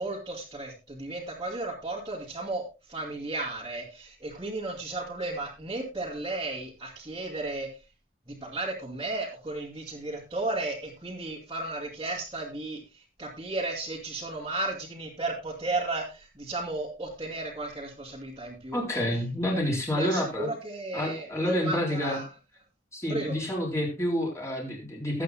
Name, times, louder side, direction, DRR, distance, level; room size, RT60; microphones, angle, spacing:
voice 1, 0.0-2.6 2.9-7.7 8.3-18.8 19.5-22.3 23.1-23.4, right 2 dB, 20° right, -6 dB, 2.6 m, -34 dB
voice 2, 18.7-20.5 20.9-22.2 22.9-25.2, left 1 dB, 15° left, -2 dB, 4.3 m, -29 dB
20.5 x 8.5 x 2.2 m, 0.28 s
head